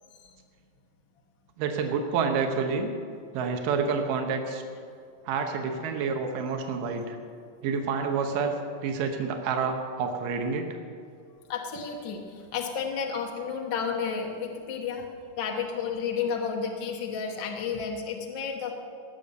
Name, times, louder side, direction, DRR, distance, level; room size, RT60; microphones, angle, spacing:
voice 1, 1.6-2.9 3.3-4.6 5.3-7.2 7.6-8.6 8.8-10.7, right 5 dB, 85° right, 4 dB, 2.7 m, -28 dB
voice 2, 11.5-15.1 15.4-18.7, left 6 dB, 55° left, 1 dB, 1.3 m, -32 dB
19.0 x 7.1 x 7.9 m, 2.3 s
omnidirectional pair, 3.8 m